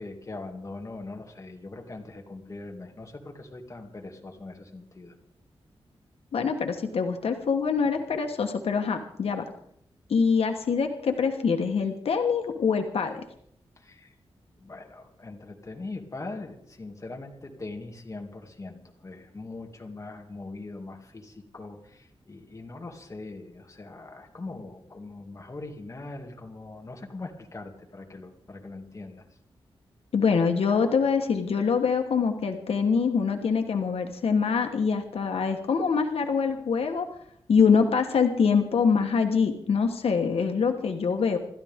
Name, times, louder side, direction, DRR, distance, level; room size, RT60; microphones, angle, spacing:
voice 1, 0.0-5.1 13.8-14.1 14.6-29.2, left 2 dB, 30° left, 2 dB, 2.5 m, -41 dB
voice 2, 6.3-9.4 10.1-13.2 30.1-37.1 37.5-41.4, left 5 dB, 80° left, 5 dB, 1.3 m, -24 dB
27.0 x 13.5 x 3.7 m, 0.71 s
wide cardioid pair, 125°, 10 cm